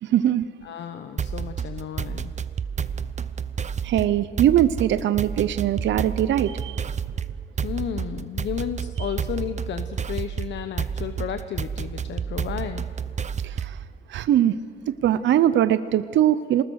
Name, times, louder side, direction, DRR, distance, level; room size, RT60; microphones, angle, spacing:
voice 1, 0.0-0.4 3.8-6.8 13.4-13.8 14.1-14.5 14.9-16.6, right 11 dB, 70° right, 13 dB, 0.7 m, -21 dB
voice 2, 0.6-2.3 7.6-12.9, left 9 dB, 65° left, 9 dB, 1.0 m, -33 dB
sound 1, 1.2-13.9, right 7 dB, 35° right, 0.9 m, -30 dB
26.5 x 20.0 x 6.4 m, 2.2 s
cardioid pair, 90°, 20 cm